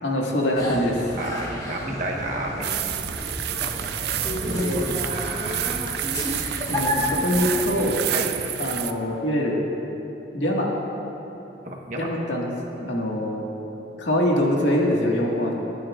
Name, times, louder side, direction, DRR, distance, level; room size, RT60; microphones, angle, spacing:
voice 1, 0.0-1.1 4.5-4.8 6.7-8.0 8.6-9.6 10.3-10.7 12.0-12.5 12.8-13.4 14.0-15.5, left 1 dB, 85° left, -2 dB, 1.9 m, -24 dB
sound 1, 0.5-7.9, left 1 dB, 20° left, 1.2 m, -31 dB
voice 2, 1.2-2.7 4.3-5.9 8.1-8.3 11.7-12.1, right 1 dB, 45° right, -1 dB, 1.3 m, -31 dB
sound 2, 2.6-8.9, right 11 dB, 60° right, 0.4 m, -29 dB
25.0 x 9.1 x 2.5 m, 3.0 s
head